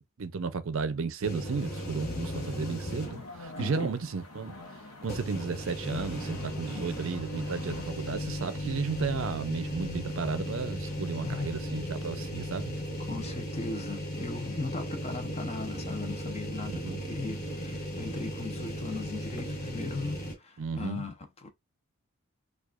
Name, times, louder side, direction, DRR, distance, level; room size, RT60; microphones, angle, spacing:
voice 1, 0.0-4.5 5.0-12.8 16.8-17.0 20.6-21.0, right 5 dB, 60° right, 0.5 m, -33 dB
sound 1, 1.2-3.4 3.8-3.9 5.0-20.3, equal, 45° left, 1.2 m, -36 dB
sound 2, 1.4-7.9, left 2 dB, 80° left, 0.9 m, -48 dB
voice 2, 3.5-3.9 6.7-6.9 11.2-11.5 13.0-21.5, left 3 dB, 30° left, 0.6 m, -38 dB
4.7 x 2.4 x 2.3 m
head